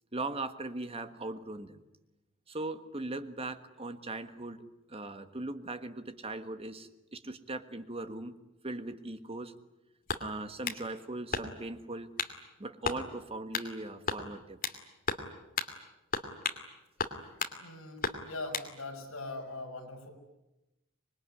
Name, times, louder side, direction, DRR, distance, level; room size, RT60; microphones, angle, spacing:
voice 1, 0.1-1.8 2.5-4.6 4.9-8.3 8.6-9.5 10.2-12.1 12.6-14.6, right 2 dB, 25° right, 9 dB, 1.5 m, -39 dB
sound 1, 10.1-10.8 11.3-11.7 12.2-12.4 12.8-13.0 13.5-13.7 14.1-14.8 15.1-15.3 15.6-15.7 16.1-16.6 17.0-17.6 18.0-18.7, left 5 dB, 40° left, 2.6 m, -34 dB
voice 2, 17.6-20.1, left 2 dB, 65° left, 2 dB, 6.1 m, -41 dB
26.0 x 21.5 x 9.9 m, 0.97 s
head